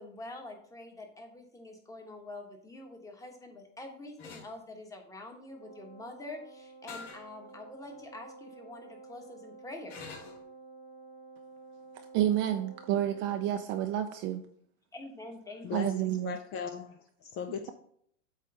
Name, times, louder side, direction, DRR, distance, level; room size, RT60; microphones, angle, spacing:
voice 1, 0.0-9.9 14.9-15.9, left 2 dB, 10° left, 1.2 m, -46 dB
sound 1, 4.2-4.5 6.9-7.2 7.8-7.9 9.9-10.4, left 5 dB, 55° left, 3.2 m, -45 dB
Wind instrument woodwind instrument, 5.5-13.7, right 3 dB, 75° left, 2.5 m, -51 dB
voice 2, 12.1-14.4 15.7-16.4, right 11 dB, 30° right, 0.5 m, -29 dB
voice 3, 15.6-17.7, left 7 dB, 35° left, 0.6 m, -39 dB
8.3 x 3.2 x 5.6 m
hypercardioid pair, 130°, 38 cm